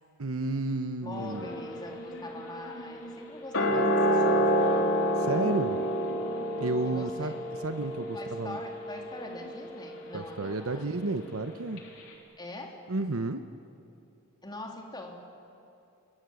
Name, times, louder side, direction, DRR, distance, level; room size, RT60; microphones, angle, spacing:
voice 1, 0.2-1.5 5.2-5.8 6.6-7.3 7.6-8.6 10.1-11.8 12.9-13.4, right 2 dB, 75° right, 8 dB, 1.0 m, -31 dB
voice 2, 1.0-5.2 6.8-7.5 8.1-10.9 12.4-12.8 14.4-15.2, left 2 dB, 20° left, 1 dB, 3.3 m, -43 dB
sound 1, 1.1-11.5 11.8-11.9, equal, 70° left, 3.9 m, -30 dB
30.0 x 22.0 x 7.9 m, 2.7 s
head